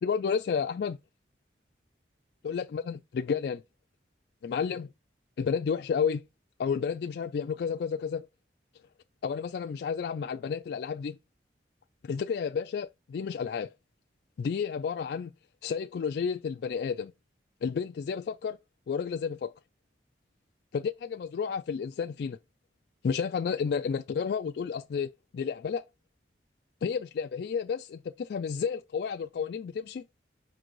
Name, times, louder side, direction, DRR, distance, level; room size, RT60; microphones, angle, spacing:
voice 1, 0.0-1.0 2.4-3.6 4.4-4.9 5.4-6.2 6.6-8.3 9.2-11.2 12.0-13.7 14.4-15.3 15.6-17.1 17.6-18.6 18.9-19.5 20.7-22.4 23.0-25.8 26.8-30.0, left 6 dB, 60° left, 0.3 m, -31 dB
5.3 x 3.9 x 4.6 m
head